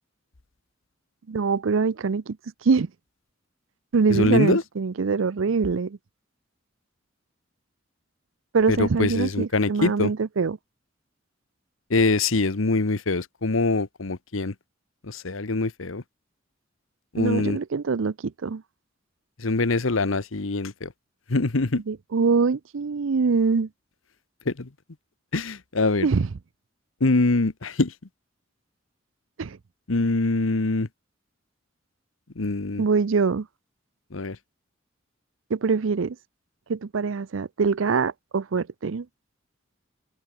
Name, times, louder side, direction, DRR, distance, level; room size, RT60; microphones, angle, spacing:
voice 1, 1.3-2.4 2.6-2.9 3.9-6.0 8.5-10.6 17.2-18.6 21.9-23.7 26.0-26.3 29.4-29.6 32.8-33.5 35.5-36.2 36.7-39.1, right 5 dB, 75° right, 0.5 m, -24 dB
voice 2, 4.1-4.6 8.7-10.1 11.9-14.5 15.0-16.0 17.1-17.6 19.4-20.9 21.3-21.8 24.4-24.7 25.3-26.1 27.0-27.9 29.9-30.9 32.3-32.8 34.1-34.4, left 3 dB, 90° left, 1.1 m, -24 dB
open air
head